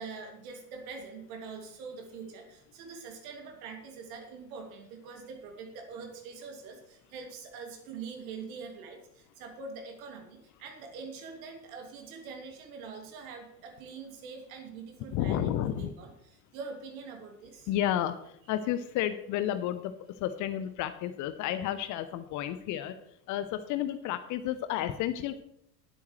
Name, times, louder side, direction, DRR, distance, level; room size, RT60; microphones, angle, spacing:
voice 1, 0.0-16.1 16.5-17.7, right 5 dB, 55° right, 3 dB, 2.7 m, -44 dB
voice 2, 15.1-15.9 17.7-23.0 23.3-25.4, left 11 dB, 35° left, 12 dB, 0.8 m, -31 dB
19.0 x 8.3 x 3.2 m, 0.73 s
figure-of-eight pair, 70°, 50 cm